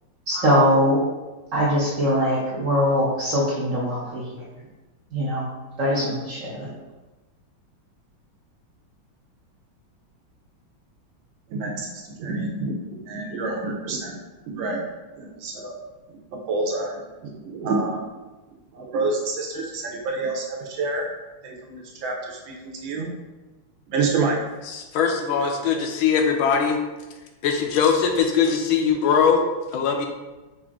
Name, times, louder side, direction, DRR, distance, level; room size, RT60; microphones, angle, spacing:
voice 1, 0.3-1.0 1.5-4.4 5.1-5.5 5.8-6.7, equal, 55° right, -6 dB, 0.9 m, -22 dB
voice 2, 11.5-12.8 13.0-14.2 14.5-14.8 15.2-15.8 16.5-16.9 17.3-18.0 18.7-21.1 21.4-23.1 23.9-24.4, right 3 dB, 75° right, -1 dB, 1.5 m, -27 dB
voice 3, 24.7-26.8 27.4-29.4 29.7-30.1, left 6 dB, 80° left, 3 dB, 1.4 m, -21 dB
4.9 x 2.5 x 3.5 m, 1.1 s
omnidirectional pair, 2.2 m